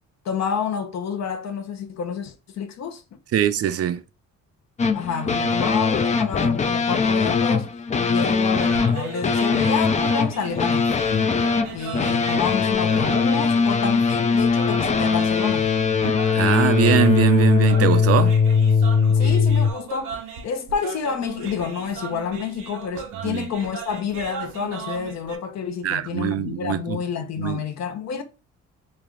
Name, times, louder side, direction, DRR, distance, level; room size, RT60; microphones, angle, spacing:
voice 1, 0.2-3.0 4.9-7.7 8.1-10.9 11.7-15.7 19.1-20.2 20.4-28.2, left 6 dB, 60° left, 0.7 m, -29 dB
voice 2, 3.3-4.0 16.0-18.4 23.2-23.5 25.8-27.0 27.4-27.6, right 10 dB, 50° right, 0.5 m, -22 dB
sound 1, 4.8-19.7, left 5 dB, 25° left, 0.4 m, -20 dB
sound 2, 8.5-25.4, right 6 dB, 85° right, 0.9 m, -37 dB
3.3 x 2.4 x 3.6 m
cardioid pair, 90°, 30 cm